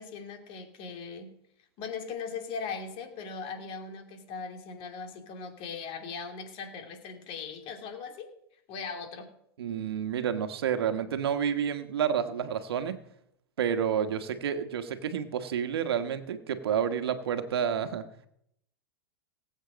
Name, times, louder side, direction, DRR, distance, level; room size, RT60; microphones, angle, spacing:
voice 1, 0.0-1.4 1.8-8.3 8.7-9.3, left 5 dB, 45° left, 5 dB, 2.7 m, -39 dB
voice 2, 9.6-13.0 13.6-18.0, right 8 dB, 85° right, 9 dB, 1.3 m, -29 dB
18.5 x 8.1 x 5.1 m, 0.76 s
hypercardioid pair, 115°, 13 cm